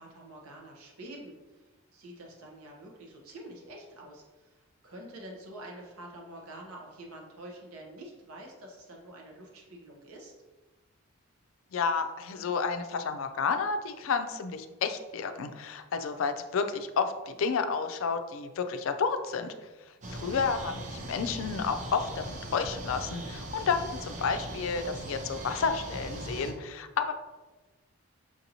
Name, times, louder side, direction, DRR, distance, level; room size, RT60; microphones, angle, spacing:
voice 1, 0.0-10.3 20.0-20.3, right 1 dB, 80° right, 0 dB, 0.9 m, -47 dB
voice 2, 11.7-19.5 20.1-27.1, left 5 dB, 65° left, 9 dB, 0.4 m, -31 dB
sound 1, 20.0-26.5, right 1 dB, 35° right, 0.5 m, -40 dB
6.1 x 2.6 x 2.9 m, 1.2 s
head